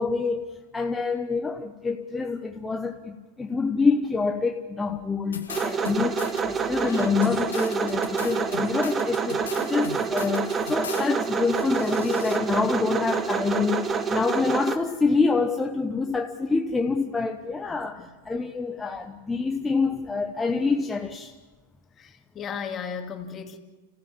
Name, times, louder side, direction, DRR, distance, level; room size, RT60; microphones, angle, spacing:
voice 1, 0.0-21.3, left 4 dB, 15° left, 1.0 m, -26 dB
sound 1, 5.3-6.4 6.8-11.1 11.5-12.4, left 6 dB, 85° left, 1.5 m, -39 dB
sound 2, 5.5-14.8, right 5 dB, 25° right, 1.4 m, -27 dB
voice 2, 17.7-18.1 22.0-23.6, left 6 dB, 30° left, 2.4 m, -36 dB
29.5 x 15.0 x 7.3 m
hypercardioid pair, 100°, 0 cm